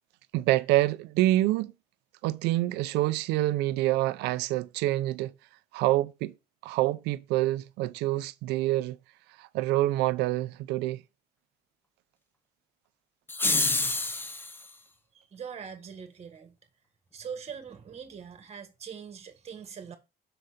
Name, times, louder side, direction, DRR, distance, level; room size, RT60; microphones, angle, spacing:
voice 1, 0.3-1.7 2.2-5.3 5.7-6.3 6.6-9.0 9.4-11.0, right 16 dB, 90° right, 0.5 m, -26 dB
sound 1, 13.3-14.6, left 2 dB, 10° left, 0.6 m, -27 dB
voice 2, 15.1-16.6 17.1-20.0, right 7 dB, 40° right, 1.6 m, -42 dB
6.9 x 3.9 x 4.9 m
cardioid pair, 110°, 17 cm